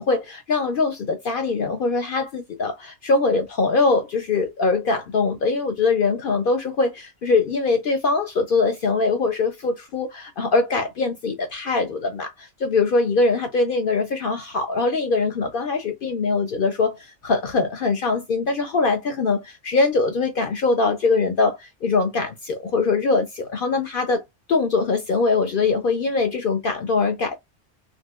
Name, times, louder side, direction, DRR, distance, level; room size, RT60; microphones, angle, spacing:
voice 1, 0.0-27.3, left 3 dB, 60° left, 0.6 m, -22 dB
3.9 x 2.2 x 2.3 m
omnidirectional pair, 1.3 m